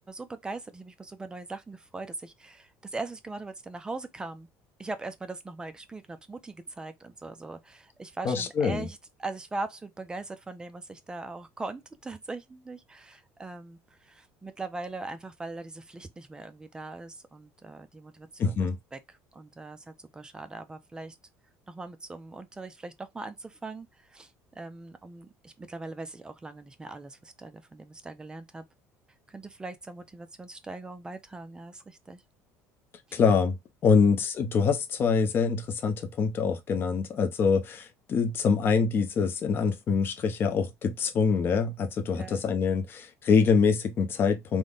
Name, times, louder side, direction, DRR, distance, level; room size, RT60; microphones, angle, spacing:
voice 1, 0.1-4.5 4.8-19.0 19.3-21.2 21.7-28.7 29.3-32.2 33.1-33.2 33.9-34.1 42.1-42.4, right 3 dB, 15° right, 0.4 m, -40 dB
voice 2, 8.2-8.9 18.4-18.8 33.1-33.6 33.8-44.6, left 5 dB, 35° left, 0.7 m, -25 dB
3.5 x 2.2 x 3.8 m
cardioid pair, 145°, 6 cm